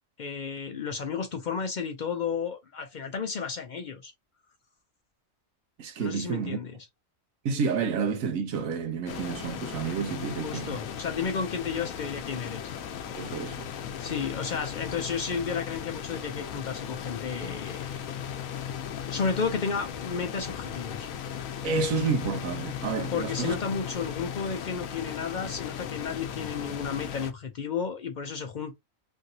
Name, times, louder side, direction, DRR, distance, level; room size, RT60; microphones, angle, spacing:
voice 1, 0.2-4.1 6.0-6.8 10.4-12.6 14.0-18.0 19.1-21.1 23.1-28.7, left 6 dB, 65° left, 0.4 m, -32 dB
voice 2, 5.8-6.6 7.4-10.8 13.1-13.7 21.6-23.6, right 5 dB, 85° right, 1.1 m, -30 dB
sound 1, 9.1-27.3, left 8 dB, 90° left, 1.0 m, -37 dB
3.2 x 2.5 x 2.6 m
omnidirectional pair, 1.4 m